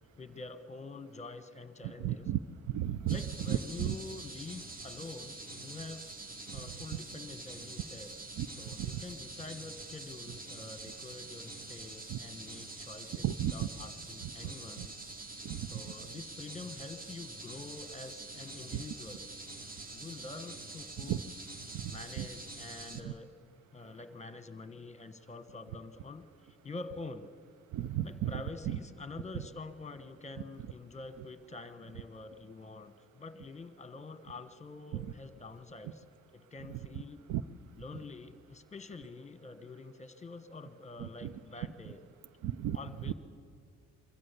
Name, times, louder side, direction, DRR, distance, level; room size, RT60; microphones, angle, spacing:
voice 1, 0.2-2.3 3.1-6.1 6.5-8.1 8.4-15.0 15.6-19.3 19.7-21.3 21.8-26.3 26.6-27.3 28.0-36.0 36.3-37.2 37.7-42.0 42.7-43.1, left 3 dB, 20° left, 12 dB, 1.2 m, -46 dB
voice 2, 2.0-2.4 2.7-3.2 3.5-3.9 8.4-8.5 8.8-8.9 12.1-12.2 13.2-13.7 14.2-14.3 14.8-14.9 15.4-15.8 21.0-21.2 21.7-21.8 22.2-22.3 23.0-23.1 27.7-28.3 28.7-28.8 34.9-35.1 36.7-36.8 37.3-37.4 41.0-41.3 42.4-42.8 43.1-43.2, right 12 dB, 75° right, 18 dB, 0.6 m, -33 dB
sound 1, 3.1-23.0, right 2 dB, 30° right, 1.7 m, -46 dB
23.5 x 14.0 x 8.4 m, 2.3 s
cardioid pair, 90°, 30 cm